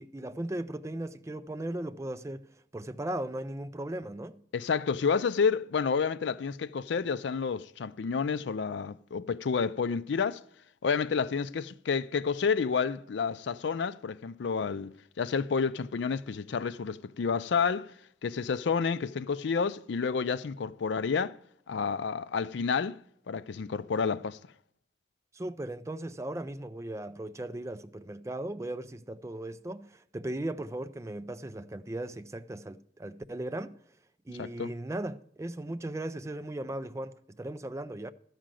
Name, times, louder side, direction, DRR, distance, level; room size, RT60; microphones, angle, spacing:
voice 1, 0.0-2.5 2.7-4.4 25.3-33.7 34.3-38.1, right 1 dB, 15° right, 0.4 m, -37 dB
voice 2, 4.5-10.4 10.8-17.9 18.2-21.4 21.7-23.0 23.3-24.4 34.4-34.7, left 5 dB, 65° left, 0.4 m, -30 dB
12.5 x 5.1 x 7.5 m
head